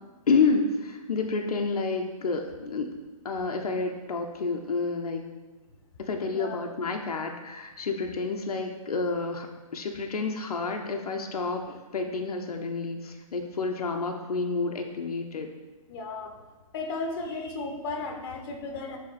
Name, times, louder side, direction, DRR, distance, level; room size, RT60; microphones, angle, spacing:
voice 1, 0.3-2.9 3.2-5.2 6.0-9.5 9.7-15.5, left 4 dB, 85° left, 3 dB, 0.8 m, -29 dB
voice 2, 15.9-16.3 16.7-19.0, left 3 dB, 40° left, 3 dB, 1.0 m, -34 dB
8.7 x 3.6 x 4.2 m, 1.2 s
hypercardioid pair, 155°, 19 cm